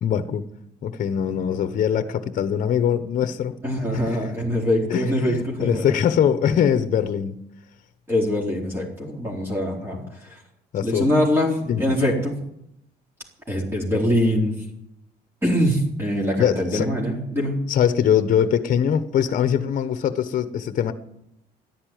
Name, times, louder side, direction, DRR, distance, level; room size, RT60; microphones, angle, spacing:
voice 1, 0.0-0.4 0.8-3.5 3.9-4.3 4.9-7.4 9.9-10.1 10.7-11.1 11.7-12.0 16.4-16.8 17.7-20.9, left 8 dB, 50° left, 11 dB, 1.1 m, -22 dB
voice 2, 3.6-5.9 8.1-10.4 10.8-12.4 13.5-14.5 15.4-17.6, equal, 15° right, -3 dB, 4.1 m, -23 dB
13.5 x 11.0 x 9.3 m, 0.79 s
cardioid pair, 110°, 17 cm